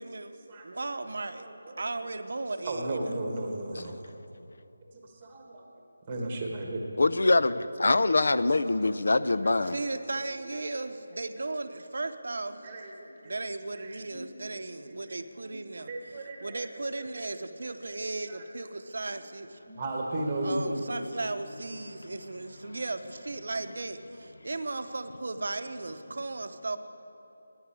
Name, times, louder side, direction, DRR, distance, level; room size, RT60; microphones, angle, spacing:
voice 1, 0.0-1.5 1.8-3.1 9.6-12.7 13.2-19.6 20.4-26.8, right 2 dB, 55° right, 9 dB, 0.7 m, -36 dB
voice 2, 1.4-1.8 2.6-4.1 5.0-5.6 6.1-6.8 8.7-8.9 9.2-9.5 11.1-11.2 12.6-13.4 13.7-14.3 14.7-14.8 15.5-15.6 15.9-16.7 16.9-17.1 18.3-18.4 19.7-20.8, right 1 dB, 15° right, 1 dB, 1.2 m, -35 dB
voice 3, 7.0-9.8, left 2 dB, 60° left, 14 dB, 0.5 m, -24 dB
9.8 x 9.6 x 9.9 m, 3.0 s
figure-of-eight pair, 180°, 0 cm